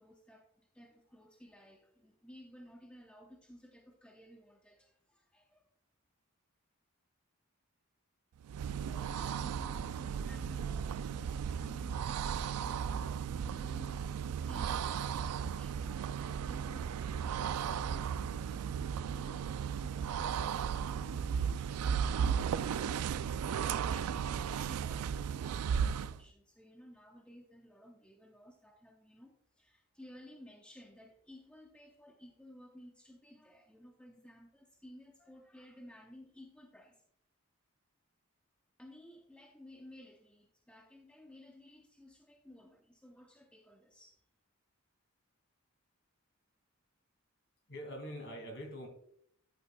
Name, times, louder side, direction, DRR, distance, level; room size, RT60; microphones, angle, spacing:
voice 1, 0.0-5.7 8.8-14.8 15.2-37.0 38.8-44.2, left 1 dB, 5° left, 1 dB, 0.7 m, -56 dB
sound 1, 8.4-26.2, right 7 dB, 90° right, 0.3 m, -35 dB
voice 2, 47.7-48.9, equal, 55° left, 3 dB, 2.3 m, -44 dB
11.0 x 8.2 x 2.2 m, 0.68 s
head